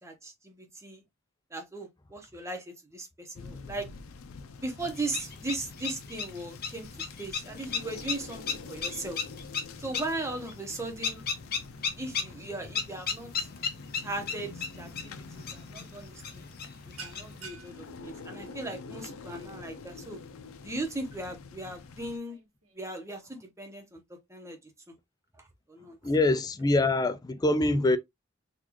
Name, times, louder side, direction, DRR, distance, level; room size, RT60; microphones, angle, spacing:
voice 1, 0.0-1.0 1.5-3.9 4.6-6.9 7.2-9.2 9.8-11.2 12.0-13.5 14.0-16.4 17.0-20.2 20.6-22.4 22.7-24.0 24.3-24.6 24.9-25.0 25.4-26.0, right 2 dB, 15° right, 0.9 m, -38 dB
sound 1, 3.3-22.2, left 4 dB, 85° left, 0.5 m, -47 dB
sound 2, 4.8-17.5, left 5 dB, 50° left, 1.0 m, -37 dB
sound 3, 17.0-23.3, right 5 dB, 80° right, 1.3 m, -52 dB
voice 2, 26.0-28.0, left 2 dB, 20° left, 0.4 m, -24 dB
3.9 x 2.4 x 3.0 m
head